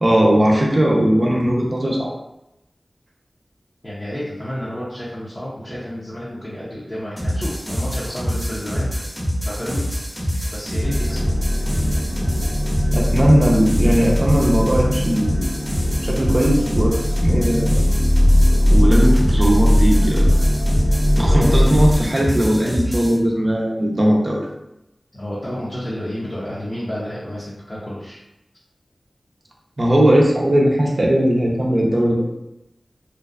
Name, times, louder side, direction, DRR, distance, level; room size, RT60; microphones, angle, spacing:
voice 1, 0.0-2.1 12.9-15.4 16.0-17.8 18.7-20.3 21.2-24.4 29.8-32.3, equal, 45° right, -3 dB, 0.5 m, -18 dB
voice 2, 3.8-11.2 21.3-21.5 25.1-28.2, equal, 35° left, -10 dB, 0.7 m, -31 dB
sound 1, 7.2-23.2, equal, 5° right, 0.8 m, -26 dB
sound 2, 10.8-21.9, equal, 80° left, 0.4 m, -19 dB
2.5 x 2.2 x 2.3 m, 0.88 s
wide cardioid pair, 60°, 0 cm